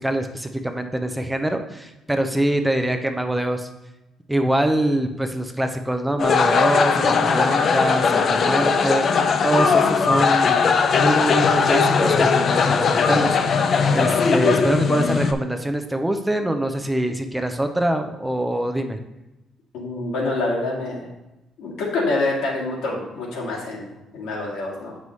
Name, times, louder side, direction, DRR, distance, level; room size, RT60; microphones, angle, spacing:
voice 1, 0.0-3.7 4.3-10.7 10.9-19.0, right 1 dB, 5° right, 6 dB, 0.5 m, -24 dB
sound 1, 6.2-15.3, left 5 dB, 45° left, 0.5 m, -19 dB
voice 2, 19.7-21.1 21.6-25.0, left 2 dB, 90° left, -3 dB, 2.0 m, -26 dB
7.8 x 5.4 x 3.1 m, 0.97 s
cardioid pair, 135°, 0 cm